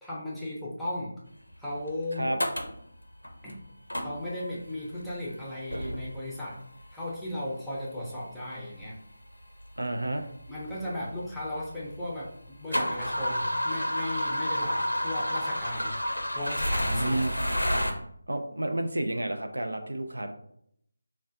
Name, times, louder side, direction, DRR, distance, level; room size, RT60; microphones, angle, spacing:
voice 1, 0.0-1.1 1.6-2.3 3.4-3.5 4.0-6.6 6.9-9.0 10.5-12.3 12.6-16.0 16.3-17.2 17.7-18.0, left 1 dB, ahead, -9 dB, 0.6 m, -36 dB
sound 1, 1.9-2.0 2.4-2.8 3.2-3.5 3.9-4.5 5.0-5.3 5.7-6.4 7.3-7.4 8.3-8.4 8.8-8.9 9.6-9.7 9.9-11.8 12.2-17.9, equal, 80° left, 0.6 m, -30 dB
voice 2, 9.8-10.3 17.0-17.3 18.3-20.3, right 1 dB, 70° right, 5 dB, 0.4 m, -30 dB
4.0 x 2.1 x 2.5 m, 0.69 s
figure-of-eight pair, 160°, 0 cm